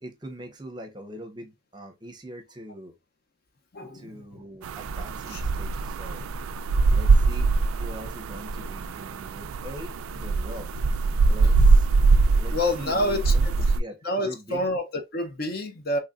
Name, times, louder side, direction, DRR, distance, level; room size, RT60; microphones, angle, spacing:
voice 1, 0.0-3.0 3.9-6.3 6.9-7.5 7.8-10.7 11.3-11.9 12.4-14.7, equal, 20° right, 0.7 m, -42 dB
voice 2, 3.7-4.4 5.3-5.4 12.5-13.5 14.0-16.0, left 1 dB, 45° left, 0.7 m, -28 dB
sound 1, 4.6-13.8, right 4 dB, 80° right, 0.4 m, -22 dB
4.0 x 3.1 x 2.2 m
head